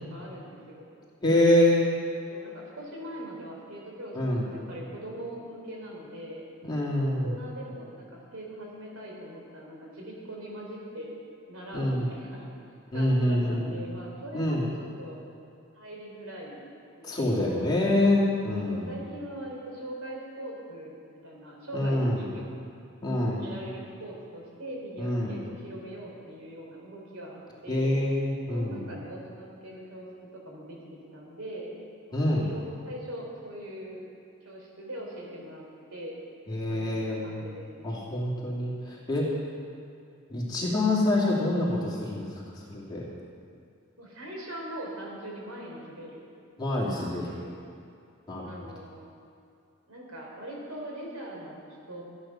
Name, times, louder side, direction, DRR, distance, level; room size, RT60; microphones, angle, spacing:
voice 1, 0.1-0.8 2.3-6.4 7.2-11.1 11.5-12.5 12.9-15.2 15.7-16.7 17.0-17.7 18.4-21.0 21.2-22.4 23.2-27.9 28.5-31.8 32.1-34.0 34.4-35.6 35.9-36.2 36.7-38.0 44.0-46.3 47.2-47.5 48.4-49.0 49.9-52.0, right 1 dB, 85° right, -2 dB, 3.6 m, -41 dB
voice 2, 1.2-1.8 4.1-4.5 6.6-7.3 11.7-12.1 12.9-13.8 14.3-14.6 17.0-18.9 21.7-22.2 23.0-23.5 25.0-25.4 27.7-28.8 32.1-32.5 36.5-37.5 37.8-39.3 40.3-43.0 46.6-47.3 48.3-48.5, left 1 dB, 20° left, -6 dB, 2.7 m, -26 dB
14.0 x 10.5 x 5.9 m, 2.4 s
head